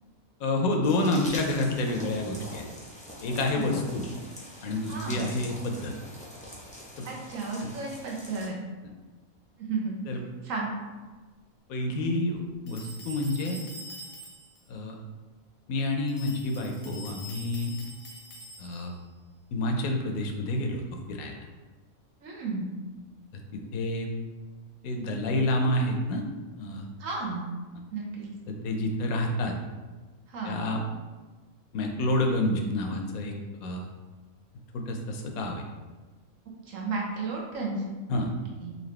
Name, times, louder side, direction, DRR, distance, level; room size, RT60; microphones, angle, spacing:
voice 1, 0.4-2.6 3.2-4.0 4.6-5.9 7.0-7.1 10.1-10.2 11.7-13.6 14.7-14.9 15.7-17.7 18.6-18.9 19.5-20.8 21.1-21.3 23.5-24.1 24.8-26.2 26.6-26.9 28.5-29.5 30.4-30.8 31.7-33.3 33.6-33.9 34.7-35.6 38.1-38.3, left 1 dB, 80° left, 2 dB, 1.0 m, -28 dB
sound 1, 0.8-8.5, equal, 10° left, 0.4 m, -44 dB
voice 2, 4.9-5.3 7.0-8.6 9.6-10.0 10.4-10.7 22.2-22.7 27.0-27.5 27.9-28.3 30.3-30.6 36.7-37.9 38.2-38.3 38.6-38.7, right 3 dB, 70° right, -2 dB, 1.1 m, -33 dB
sound 2, 12.7-14.6 16.1-19.0, equal, 60° left, 0.8 m, -45 dB
4.0 x 2.6 x 3.2 m, 1.3 s
omnidirectional pair, 1.5 m